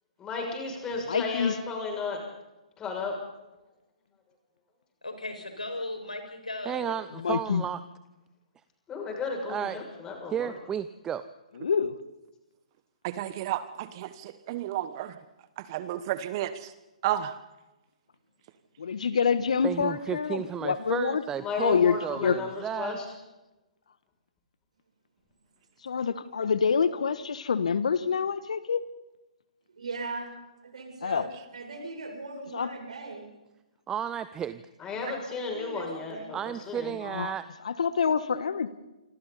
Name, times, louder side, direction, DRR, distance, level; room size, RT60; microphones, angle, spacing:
voice 1, 0.2-2.2 2.8-3.1 8.9-10.5 21.4-23.0 34.8-36.9, left 4 dB, 15° left, 1 dB, 6.7 m, -34 dB
voice 2, 1.1-1.5 7.2-7.6 11.6-11.9 18.8-21.2 21.6-22.4 25.8-28.8 31.0-31.3 32.5-32.7 37.0-37.3 37.6-38.7, left 6 dB, 65° left, 14 dB, 1.3 m, -26 dB
voice 3, 5.0-7.0 7.3-7.4, left 2 dB, 85° left, 4 dB, 5.7 m, -37 dB
voice 4, 6.7-7.8 9.5-9.8 10.3-11.2 19.6-23.0 33.9-34.6 36.3-37.5, right 9 dB, 15° right, 14 dB, 0.7 m, -33 dB
voice 5, 13.0-15.1 15.7-16.5 17.0-17.3, right 13 dB, 35° right, 13 dB, 1.1 m, -31 dB
voice 6, 29.8-30.3 30.6-33.3 34.9-35.2 35.5-36.3, right 3 dB, 70° right, 2 dB, 7.3 m, -39 dB
27.5 x 26.0 x 4.1 m, 1.0 s
figure-of-eight pair, 130°, 4 cm